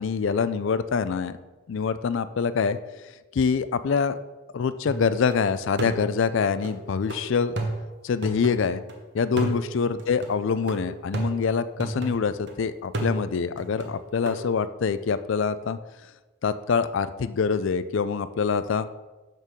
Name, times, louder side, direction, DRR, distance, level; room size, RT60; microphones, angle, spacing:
voice 1, 0.0-1.4 1.7-2.8 3.3-4.2 4.5-7.6 8.0-8.8 9.1-15.8 16.4-18.9, left 5 dB, 60° left, 14 dB, 0.3 m, -25 dB
sound 1, 4.9-5.4 5.8-8.9 9.4-12.5 12.9-14.4, right 2 dB, 50° right, 1.1 m, -33 dB
6.5 x 5.4 x 6.2 m, 1.2 s
head